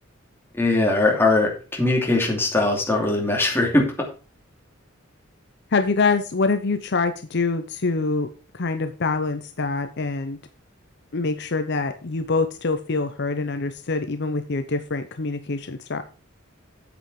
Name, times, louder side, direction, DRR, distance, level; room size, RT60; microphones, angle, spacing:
voice 1, 0.5-3.8, left 2 dB, 10° left, -1 dB, 2.7 m, -20 dB
voice 2, 5.7-10.4 11.1-16.0, left 3 dB, 55° left, 9 dB, 0.7 m, -25 dB
8.5 x 8.1 x 4.8 m, 0.34 s
head